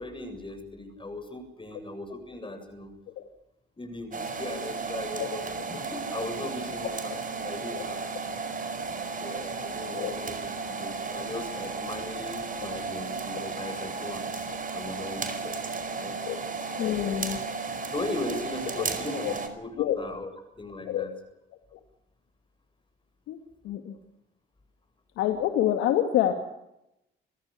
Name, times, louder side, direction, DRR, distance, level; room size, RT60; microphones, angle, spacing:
voice 1, 0.0-2.9 3.8-8.4 9.2-14.5 14.7-16.7 17.9-20.3 20.6-21.1, left 2 dB, 25° left, 7 dB, 7.6 m, -38 dB
sound 1, 4.1-19.5, right 4 dB, 45° right, 4.9 m, -34 dB
voice 2, 16.8-17.4 18.8-18.9 19.2-19.3 19.8-20.0 20.9-21.0 21.7-21.8 23.3-23.4 23.6-24.0 25.2-26.3, left 11 dB, 85° left, 6 dB, 2.4 m, -27 dB
28.0 x 15.5 x 8.6 m, 0.85 s
supercardioid pair, 60°, 20 cm